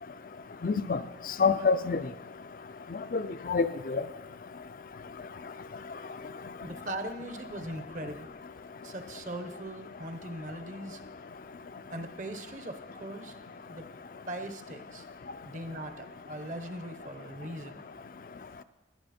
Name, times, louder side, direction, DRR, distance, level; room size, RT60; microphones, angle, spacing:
voice 1, 0.6-1.0 1.4-2.0 3.1-4.0, left 4 dB, 50° left, 0.4 m, -26 dB
voice 2, 6.6-8.5 8.8-11.0 11.9-13.9 14.3-15.1 15.4-17.8, right 1 dB, 45° right, 1.0 m, -40 dB
17.5 x 11.5 x 4.3 m
head